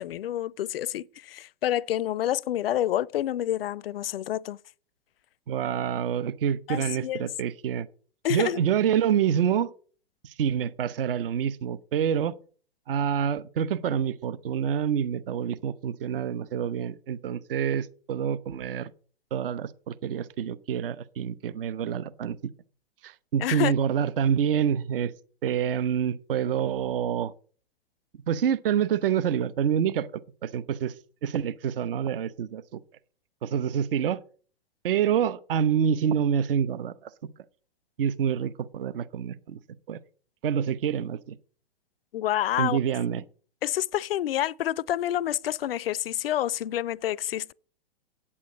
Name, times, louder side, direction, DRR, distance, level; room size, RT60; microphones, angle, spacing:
voice 1, 0.0-4.6 6.7-7.3 8.2-8.6 23.4-23.7 42.1-42.8 43.6-47.5, left 12 dB, 70° left, 0.5 m, -28 dB
voice 2, 5.5-7.9 8.3-9.7 10.2-12.3 12.9-18.9 19.3-22.4 23.0-25.1 25.4-27.3 28.3-30.9 31.2-32.8 33.4-34.2 34.8-37.1 38.0-39.6 39.9-40.0 40.4-41.4 42.6-43.2, right 8 dB, 60° right, 0.7 m, -27 dB
8.7 x 8.6 x 5.2 m
hypercardioid pair, 115°, 31 cm